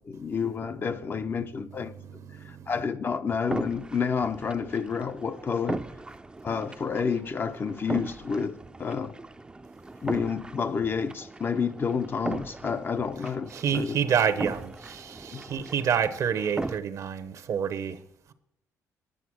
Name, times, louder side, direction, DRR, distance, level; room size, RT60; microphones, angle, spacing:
voice 1, 0.1-1.9 2.5-5.8 6.4-9.2 10.0-14.0 15.3-15.4, left 6 dB, 35° left, 0.6 m, -29 dB
voice 2, 1.7-2.7 13.5-18.0, right 8 dB, 60° right, 0.9 m, -28 dB
sound 1, 3.4-16.8, right 2 dB, 15° right, 0.5 m, -39 dB
10.0 x 6.8 x 6.2 m
cardioid pair, 100°, 6 cm